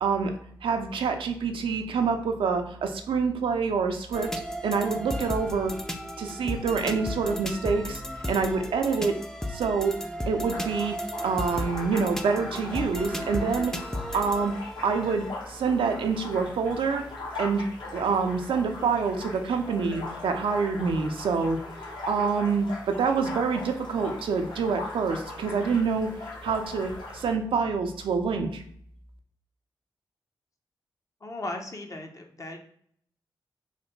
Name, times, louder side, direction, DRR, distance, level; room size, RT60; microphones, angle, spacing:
voice 1, 0.0-0.3 0.6-4.3 4.6-5.7 6.2-8.0 8.3-9.1 9.5-9.9 10.3-11.0 11.2-14.5 14.8-17.0 17.4-17.6 17.9-26.1 26.4-28.6, right 5 dB, 75° right, 5 dB, 0.4 m, -26 dB
sound 1, 4.1-15.3, equal, 5° left, 0.4 m, -34 dB
sound 2, 10.5-27.3, left 2 dB, 60° left, 1.0 m, -40 dB
voice 2, 31.2-32.6, left 2 dB, 40° left, 3 dB, 0.7 m, -37 dB
3.2 x 2.1 x 3.1 m, 0.63 s
supercardioid pair, 40°, 9 cm